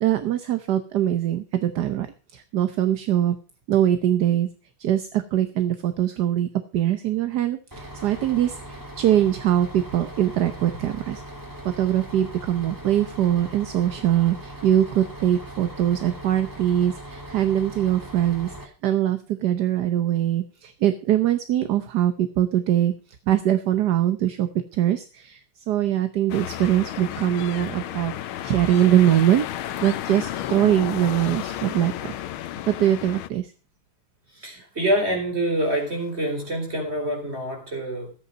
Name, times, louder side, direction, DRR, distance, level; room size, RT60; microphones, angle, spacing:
voice 1, 0.0-2.1 2.3-3.3 3.7-4.5 4.8-11.2 11.6-22.9 23.3-25.4 25.7-28.1 28.4-29.5 29.8-32.2 32.7-33.5, right 11 dB, 60° right, 10 dB, 1.3 m, -22 dB
Bus, 7.7-18.6, right 1 dB, 10° right, 2.7 m, -40 dB
sound 1, 26.3-33.3, left 12 dB, 75° left, 1.6 m, -32 dB
voice 2, 34.3-38.1, right 1 dB, 30° right, 2 dB, 4.8 m, -26 dB
13.5 x 8.6 x 5.3 m, 0.35 s
omnidirectional pair, 2.4 m